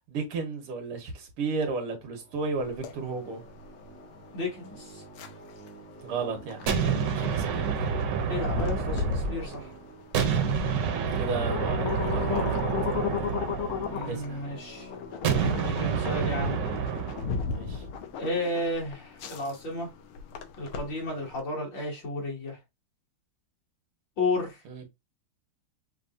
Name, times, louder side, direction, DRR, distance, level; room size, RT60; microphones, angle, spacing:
voice 1, 0.1-3.4 6.0-6.8 7.1-7.8 11.2-12.7 14.0-14.4 17.4-17.8 24.7-24.8, right 4 dB, 90° right, 2.2 m, -33 dB
sound 1, 1.6-19.7, right 1 dB, 15° left, 0.4 m, -49 dB
sound 2, 2.6-21.4, left 6 dB, 80° left, 1.7 m, -36 dB
voice 2, 4.3-5.0 8.3-9.7 13.9-14.9 15.5-16.6 18.2-19.9 20.6-22.6 24.2-24.6, left 2 dB, 60° left, 3.1 m, -32 dB
sound 3, 6.7-9.7 10.1-14.4 15.2-17.4, right 6 dB, 60° right, 1.3 m, -28 dB
6.1 x 2.8 x 2.7 m
omnidirectional pair, 2.4 m